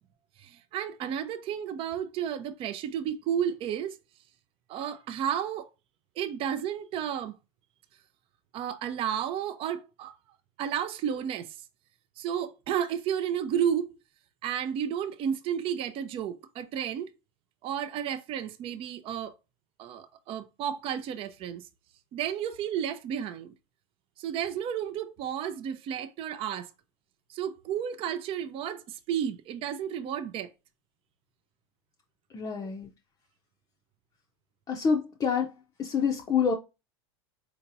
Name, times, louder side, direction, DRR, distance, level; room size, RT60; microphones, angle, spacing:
voice 1, 0.4-4.0 4.7-5.7 6.2-7.4 8.5-10.1 10.6-11.5 12.2-14.0 14.4-17.1 17.6-19.3 19.8-21.6 22.1-23.5 24.2-26.7 27.3-30.5, right 9 dB, 40° right, 0.5 m, -32 dB
voice 2, 32.3-32.9 34.7-35.5 35.8-36.5, left 6 dB, 25° left, 0.6 m, -27 dB
4.5 x 2.8 x 2.6 m
hypercardioid pair, 100°, 14 cm